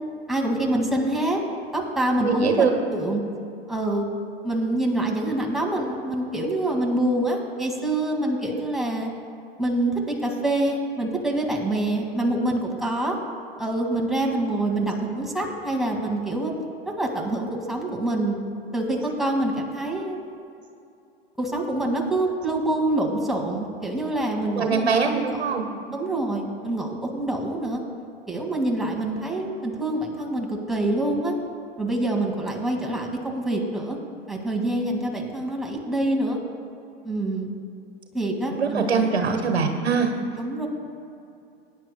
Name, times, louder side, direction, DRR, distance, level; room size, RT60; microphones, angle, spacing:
voice 1, 0.3-1.4 1.7-3.2 3.7-4.0 4.4-9.1 9.6-13.2 13.6-16.5 16.9-18.4 18.7-20.2 21.4-25.5 25.9-27.8 28.3-31.3 31.8-34.0 34.3-36.4 37.0-37.5 38.1-39.3 40.3-40.7, right 1 dB, ahead, -2 dB, 2.1 m, -26 dB
voice 2, 2.2-2.7 24.5-25.7 38.5-40.1, right 5 dB, 85° right, 5 dB, 1.3 m, -22 dB
20.0 x 10.0 x 2.3 m, 2.5 s
hypercardioid pair, 95°, 31 cm